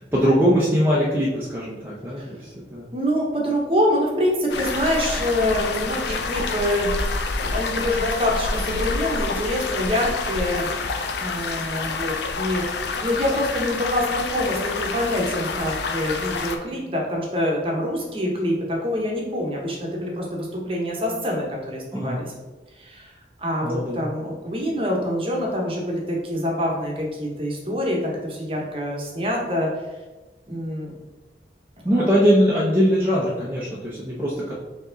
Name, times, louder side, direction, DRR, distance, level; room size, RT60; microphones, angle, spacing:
voice 1, 0.0-2.8 21.9-22.2 23.6-24.0 31.8-34.5, equal, 10° right, -7 dB, 0.6 m, -21 dB
voice 2, 2.9-6.9 7.4-10.7 11.2-22.3 22.8-23.1 23.4-29.7 30.5-30.9 32.0-32.1, left 1 dB, 30° right, -1 dB, 0.9 m, -25 dB
sound 1, 4.5-16.6, left 4 dB, 75° left, 0.4 m, -28 dB
4.6 x 2.9 x 3.9 m, 1.2 s
head